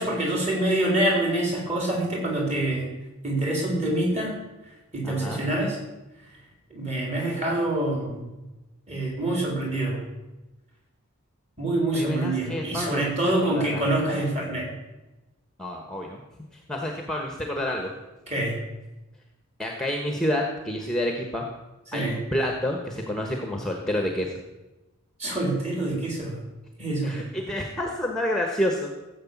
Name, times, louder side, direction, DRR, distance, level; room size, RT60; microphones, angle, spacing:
voice 1, 0.0-2.9 3.2-4.4 4.9-5.8 6.7-8.3 8.9-10.0 11.6-14.7 18.3-18.6 21.9-22.2 25.2-26.4 26.8-27.2, right 1 dB, 30° right, -1 dB, 4.0 m, -26 dB
voice 2, 5.0-5.4 11.9-13.1 13.4-14.0 15.6-16.2 16.5-17.9 19.6-21.4 21.9-24.4 27.0-28.9, left 1 dB, 5° left, 2 dB, 1.2 m, -29 dB
15.0 x 8.0 x 7.3 m, 1.1 s
head